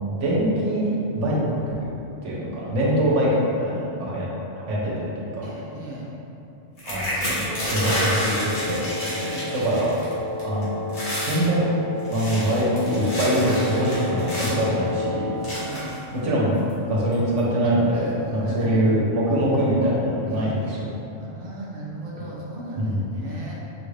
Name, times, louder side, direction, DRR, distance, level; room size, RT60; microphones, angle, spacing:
voice 1, 0.2-1.4 2.2-4.3 4.7-5.5 6.8-7.4 7.7-8.9 9.6-9.9 10.4-10.7 11.2-11.7 12.1-15.3 16.2-16.5 16.9-20.8 22.8-23.0, right 1 dB, 70° right, -6 dB, 1.2 m, -23 dB
voice 2, 5.4-6.1 7.6-7.9 9.1-9.5 15.6-15.9 17.6-18.9 20.3-23.5, right 1 dB, 55° right, -5 dB, 0.7 m, -37 dB
sound 1, 6.8-10.1 10.4-10.6 10.9-11.4 12.0-14.7 15.4-16.0 16.7-16.8 17.1-17.4, equal, 65° left, 1.4 m, -29 dB
Wind instrument woodwind instrument, 7.4-15.7, left 3 dB, 40° left, 1.3 m, -32 dB
5.7 x 2.5 x 3.2 m, 2.9 s
omnidirectional pair, 1.3 m